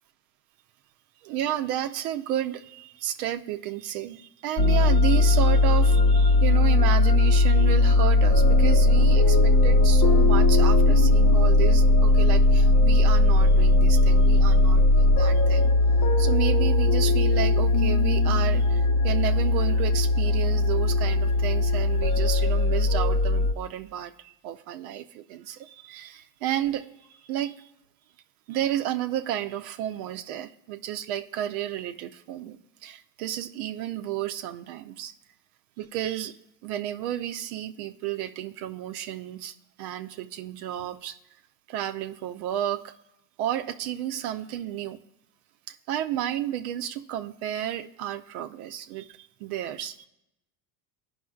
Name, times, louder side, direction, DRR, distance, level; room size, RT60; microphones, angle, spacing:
voice 1, 1.2-15.7 16.2-24.1 24.4-26.9 27.3-27.5 28.5-32.6 32.8-35.1 35.8-36.3 36.6-39.5 39.8-41.1 41.7-42.8 43.4-45.0 45.9-49.0 49.4-50.0, right 11 dB, 75° right, 6 dB, 0.7 m, -32 dB
sound 1, 4.6-23.5, left 2 dB, 55° left, 1.0 m, -19 dB
14.0 x 5.5 x 2.3 m, 0.86 s
hypercardioid pair, 85°, 44 cm